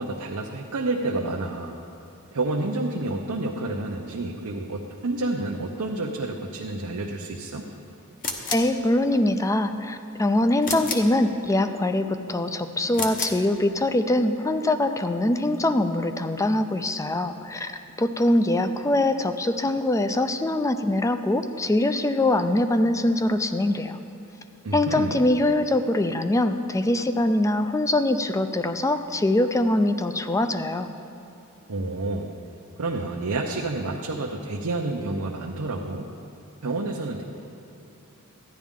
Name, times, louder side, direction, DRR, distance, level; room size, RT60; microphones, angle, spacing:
voice 1, 0.0-1.8 2.3-7.7 24.6-25.2 31.7-32.3 32.8-36.1 36.6-37.2, right 2 dB, 80° right, 0 dB, 0.7 m, -29 dB
sound 1, 8.2-8.8 10.6-11.2 12.9-13.4, left 4 dB, 40° left, 0.9 m, -30 dB
voice 2, 8.5-17.7 18.0-24.0 24.7-30.9, left 1 dB, 15° left, 9 dB, 0.4 m, -23 dB
13.5 x 10.0 x 3.7 m, 2.9 s
head